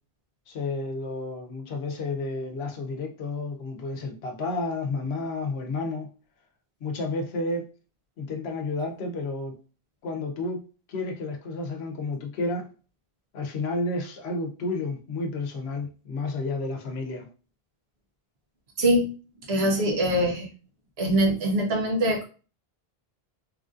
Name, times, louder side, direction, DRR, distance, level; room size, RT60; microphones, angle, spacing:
voice 1, 0.5-6.1 6.8-7.7 8.2-9.5 10.0-10.6 10.9-12.7 13.3-17.3, left 3 dB, 85° left, 4 dB, 0.9 m, -31 dB
voice 2, 18.8-19.1 19.5-20.5 21.0-22.2, right 1 dB, 80° right, 1 dB, 1.1 m, -23 dB
3.1 x 2.5 x 2.4 m, 0.35 s
omnidirectional pair, 1.0 m